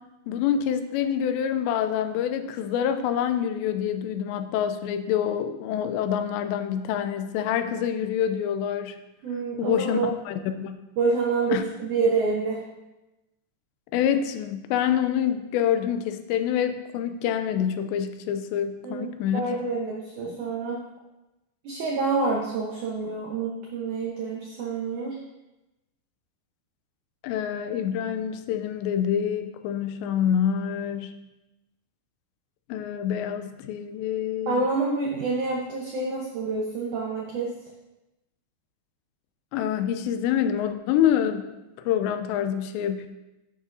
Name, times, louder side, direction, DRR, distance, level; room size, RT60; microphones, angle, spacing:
voice 1, 0.3-9.0 9.6-10.0 10.3-10.8 11.5-11.6 13.9-19.4 27.2-31.1 32.7-34.6 39.5-41.5 41.9-43.1, left 9 dB, 85° left, 9 dB, 2.8 m, -26 dB
voice 2, 9.2-10.1 11.0-12.6 18.8-20.8 21.6-25.2 34.5-37.5, right 4 dB, 80° right, -1 dB, 1.7 m, -27 dB
11.0 x 9.4 x 2.7 m, 0.99 s
omnidirectional pair, 5.0 m